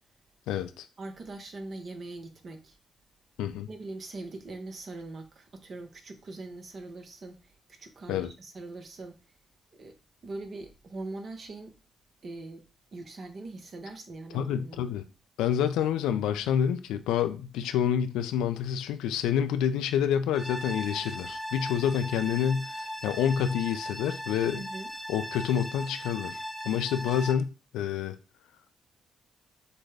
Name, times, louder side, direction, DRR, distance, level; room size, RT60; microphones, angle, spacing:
voice 1, 0.5-0.9 3.4-3.7 8.1-8.3 14.3-15.0 15.4-24.6 25.1-28.2, left 9 dB, 80° left, 0.4 m, -28 dB
voice 2, 1.0-2.8 3.7-9.2 9.7-10.0 10.2-11.7 12.2-15.0 24.5-24.9, right 2 dB, 55° right, 1.0 m, -42 dB
sound 1, 20.3-27.3, equal, 5° right, 0.8 m, -38 dB
6.5 x 2.3 x 3.3 m
hypercardioid pair, 45°, 0 cm